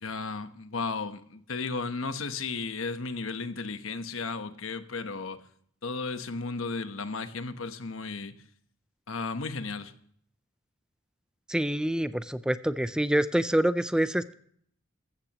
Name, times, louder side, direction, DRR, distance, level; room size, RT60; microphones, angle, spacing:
voice 1, 0.0-5.4 5.8-8.3 9.1-9.9, left 4 dB, 80° left, 1.1 m, -34 dB
voice 2, 11.5-14.3, right 1 dB, 5° right, 0.4 m, -26 dB
14.5 x 14.5 x 3.0 m
head